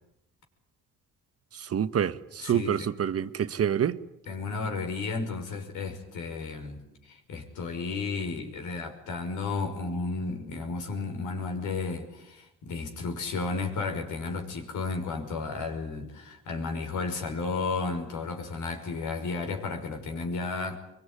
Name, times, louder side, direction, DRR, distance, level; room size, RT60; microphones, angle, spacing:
voice 1, 1.5-4.0, right 9 dB, 50° right, 1.3 m, -27 dB
voice 2, 2.4-2.8 4.3-6.8 7.1-20.8, left 4 dB, 80° left, 5.7 m, -33 dB
24.0 x 23.0 x 9.8 m
cardioid pair, 90°, 30 cm